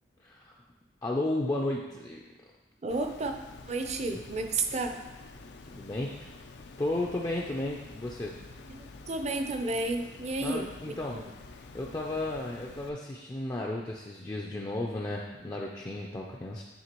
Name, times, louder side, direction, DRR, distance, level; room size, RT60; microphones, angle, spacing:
voice 1, 0.2-0.5 1.0-2.2 5.7-6.4 6.8-8.4 10.4-11.2 11.7-16.6, left 2 dB, 20° left, -2 dB, 0.4 m, -33 dB
voice 2, 2.8-3.3 3.7-4.9 8.7-10.7 11.1-11.3, right 3 dB, 40° right, 5 dB, 0.5 m, -31 dB
Water, 2.9-12.9, left 3 dB, 80° left, 0.5 m, -48 dB
9.5 x 3.6 x 3.0 m, 1.1 s
head